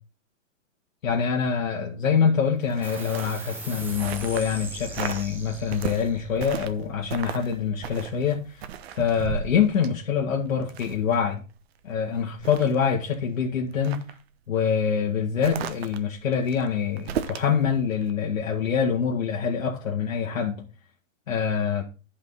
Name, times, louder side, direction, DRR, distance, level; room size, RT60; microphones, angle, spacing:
voice 1, 1.0-8.6 8.9-11.4 11.8-14.0 14.5-20.6 21.3-21.8, left 7 dB, 80° left, 2.1 m, -25 dB
sound 1, 2.6-4.6 4.9-5.3 5.7-6.8 7.1-7.5 7.8-11.1 11.6-11.7 12.1-13.2 13.7-14.2 15.4-17.5 18.0-18.1, right 8 dB, 50° right, 1.0 m, -35 dB
sound 2, 2.8-9.7, right 2 dB, 5° right, 0.8 m, -42 dB
10.0 x 5.5 x 5.4 m
hypercardioid pair, 150°, 39 cm